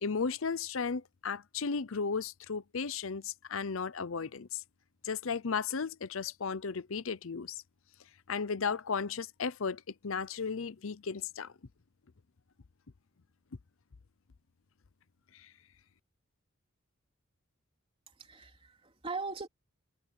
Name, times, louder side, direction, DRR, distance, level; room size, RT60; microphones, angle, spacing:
voice 1, 0.0-4.6 5.0-7.6 8.3-11.5 15.3-15.5, left 5 dB, 65° left, 0.7 m, -35 dB
voice 2, 18.2-19.5, right 4 dB, 25° right, 3.8 m, -40 dB
head